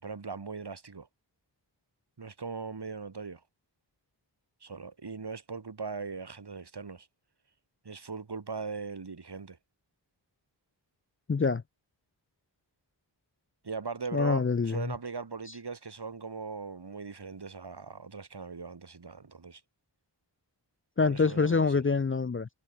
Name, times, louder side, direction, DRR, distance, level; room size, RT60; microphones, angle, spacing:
voice 1, 0.0-1.1 2.2-3.4 4.6-7.1 7.8-9.6 13.6-19.6 21.0-21.8, right 4 dB, 60° right, 5.0 m, -39 dB
voice 2, 11.3-11.6 14.1-14.9 21.0-22.5, left 4 dB, 30° left, 0.6 m, -26 dB
wide cardioid pair, 80°, 44 cm